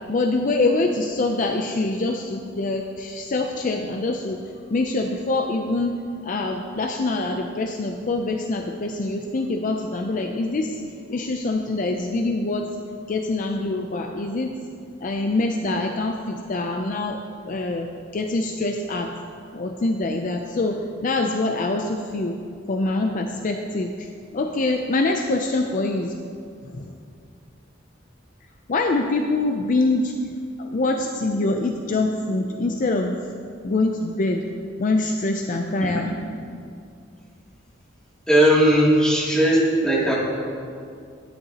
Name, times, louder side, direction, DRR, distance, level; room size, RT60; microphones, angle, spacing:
voice 1, 0.0-10.8 11.1-12.7 13.1-14.5 15.0-19.1 19.5-22.4 22.7-26.2 26.6-27.0 28.7-33.2 33.6-34.4 34.8-36.1, left 2 dB, 45° left, 4 dB, 0.5 m, -25 dB
voice 2, 38.3-40.1, equal, 5° left, -8 dB, 2.6 m, -18 dB
11.5 x 10.5 x 2.9 m, 2.3 s
head